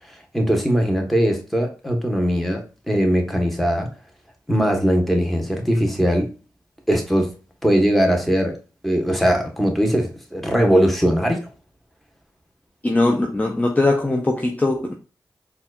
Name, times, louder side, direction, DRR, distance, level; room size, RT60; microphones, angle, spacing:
voice 1, 0.3-3.9 4.5-6.3 6.9-7.3 7.6-8.5 8.8-11.5, equal, ahead, 1.1 m, -20 dB
voice 2, 12.8-15.0, left 2 dB, 20° left, 0.6 m, -20 dB
4.2 x 2.4 x 2.3 m
cardioid pair, 40°, 8 cm